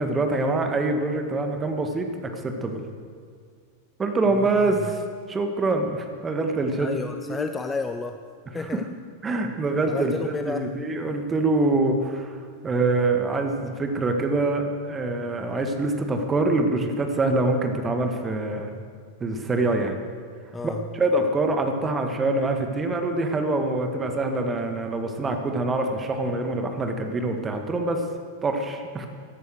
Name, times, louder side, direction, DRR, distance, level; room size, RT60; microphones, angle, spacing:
voice 1, 0.0-2.8 4.0-5.0 5.3-7.4 9.2-12.4 12.6-18.8 19.2-20.0 20.6-28.0 28.4-29.1, right 2 dB, 20° right, 5 dB, 1.7 m, -25 dB
voice 2, 6.8-8.2 8.5-8.9 9.9-10.7 20.5-20.8, left 4 dB, 15° left, 7 dB, 0.6 m, -31 dB
14.5 x 11.0 x 6.5 m, 2.1 s
figure-of-eight pair, 90°, 0 cm